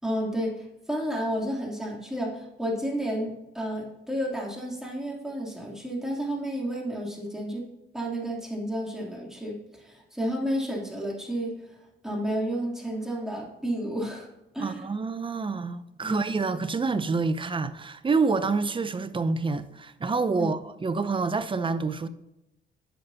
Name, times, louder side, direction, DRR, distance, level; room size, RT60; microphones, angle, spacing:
voice 1, 0.0-7.6 7.9-11.5 12.0-14.3 14.5-14.8 16.0-16.2 20.3-20.5, equal, 5° right, 3.0 m, -31 dB
voice 2, 14.6-22.1, right 4 dB, 25° right, 0.7 m, -27 dB
10.0 x 6.6 x 2.8 m
cardioid pair, 90°, 20 cm